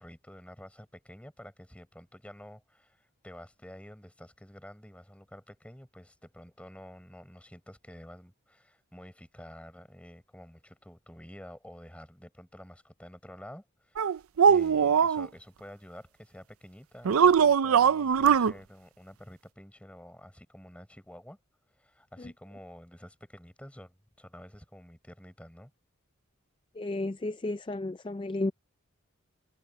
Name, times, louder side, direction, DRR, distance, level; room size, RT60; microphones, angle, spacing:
voice 1, 0.0-21.4 21.8-25.7, equal, 5° left, 5.0 m, -50 dB
sound 1, 14.0-15.3 17.0-18.5, right 7 dB, 90° right, 0.5 m, -21 dB
voice 2, 26.8-28.5, left 2 dB, 25° left, 0.4 m, -32 dB
head